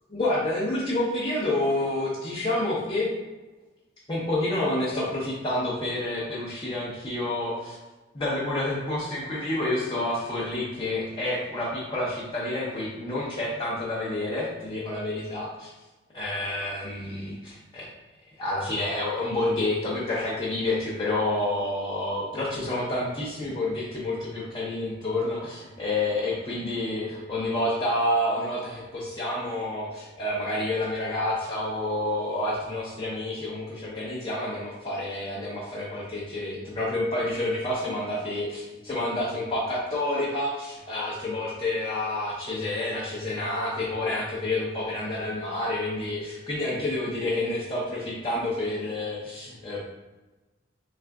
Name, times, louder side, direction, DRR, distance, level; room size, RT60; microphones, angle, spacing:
voice 1, 0.1-3.1 4.1-7.8 8.1-15.7 16.1-17.9 18.4-49.8, left 1 dB, 25° left, -6 dB, 0.6 m, -29 dB
3.6 x 2.4 x 3.4 m, 1.2 s
head